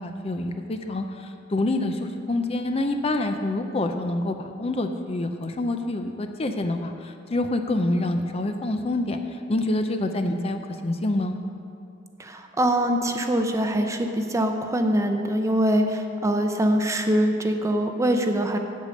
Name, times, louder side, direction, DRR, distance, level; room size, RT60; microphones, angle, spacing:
voice 1, 0.0-11.4, left 2 dB, 30° left, 6 dB, 0.5 m, -27 dB
voice 2, 12.2-18.6, right 1 dB, 15° right, 5 dB, 0.6 m, -23 dB
8.3 x 8.2 x 6.4 m, 2.5 s
head